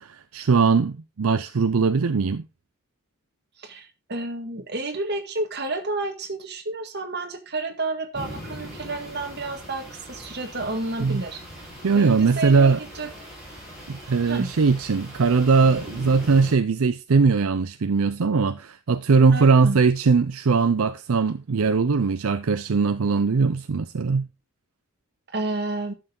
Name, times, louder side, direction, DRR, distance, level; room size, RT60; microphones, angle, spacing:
voice 1, 0.0-2.4 11.0-11.2 11.8-12.8 13.9-24.3, right 4 dB, 70° right, 0.5 m, -20 dB
voice 2, 3.6-11.4 12.0-13.1 14.3-14.5 19.3-19.8 25.3-25.9, right 2 dB, 50° right, 1.8 m, -30 dB
sound 1, 8.1-16.5, equal, ahead, 5.8 m, -41 dB
11.5 x 6.6 x 3.8 m
head